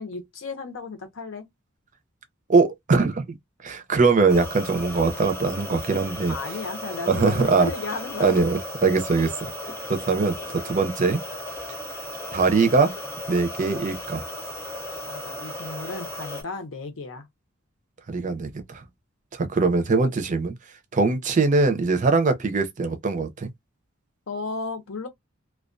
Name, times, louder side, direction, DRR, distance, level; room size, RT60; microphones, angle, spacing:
voice 1, 0.0-1.5 6.3-8.4 15.1-17.3 24.3-25.1, left 3 dB, 70° left, 0.7 m, -34 dB
voice 2, 2.5-3.4 3.6-6.3 7.1-7.7 8.2-9.5 9.9-10.4 10.6-11.2 12.3-12.9 13.3-14.2 18.1-18.8 19.3-20.5 20.9-23.5, right 4 dB, 40° right, 0.5 m, -22 dB
sound 1, 4.3-16.4, left 1 dB, 15° left, 0.8 m, -36 dB
2.2 x 2.2 x 2.5 m
head